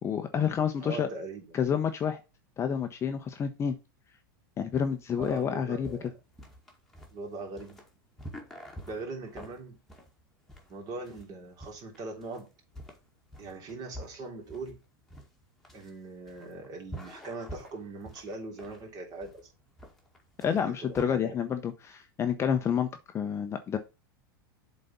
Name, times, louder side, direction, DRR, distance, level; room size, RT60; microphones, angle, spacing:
voice 1, 0.0-1.1 1.5-2.2 2.6-3.7 4.6-5.9 20.4-22.9 23.1-23.8, left 7 dB, 25° left, 0.8 m, -29 dB
voice 2, 0.8-1.4 5.2-6.1 7.1-7.8 8.9-9.8 10.7-12.5 13.4-14.8 15.7-19.5 20.5-21.3, right 3 dB, 35° right, 3.2 m, -41 dB
sound 1, 4.7-21.1, equal, 5° left, 1.9 m, -47 dB
7.4 x 4.2 x 5.5 m
supercardioid pair, 135°, 12 cm